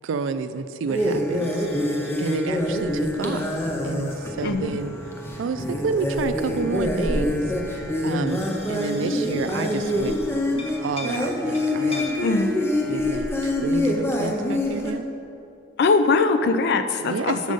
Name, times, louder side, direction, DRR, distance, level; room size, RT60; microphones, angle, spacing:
voice 1, 0.0-1.7 2.2-3.5 3.8-4.9 5.4-8.4 8.7-10.2 10.8-12.1 12.9-15.1 17.0-17.5, right 4 dB, 80° right, 11 dB, 0.4 m, -29 dB
sound 1, 0.9-14.9, left 1 dB, 15° left, 0.6 m, -26 dB
sound 2, 1.4-2.4 2.6-10.2 10.6-12.4, left 1 dB, 30° left, 1.1 m, -40 dB
voice 2, 4.4-4.7 12.2-12.5 15.8-17.5, left 4 dB, 60° left, 8 dB, 0.4 m, -21 dB
6.4 x 5.3 x 5.1 m, 2.5 s
head